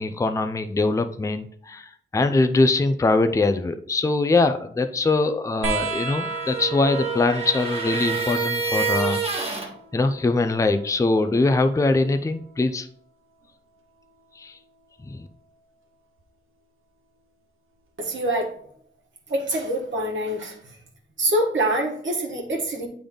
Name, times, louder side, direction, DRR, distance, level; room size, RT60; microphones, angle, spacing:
voice 1, 0.0-9.2 9.9-12.9 14.4-14.6 15.0-15.3, left 3 dB, 15° left, 8 dB, 0.4 m, -22 dB
sound 1, 5.6-12.7 14.1-14.9 16.2-16.3, right 4 dB, 85° right, 1.0 m, -36 dB
sound 2, 6.1-9.7, right 5 dB, 30° right, 1.3 m, -27 dB
voice 2, 18.0-18.5 19.3-20.6 21.2-22.9, right 1 dB, 65° right, -1 dB, 1.4 m, -25 dB
8.6 x 3.5 x 3.8 m, 0.62 s
wide cardioid pair, 95°, 21 cm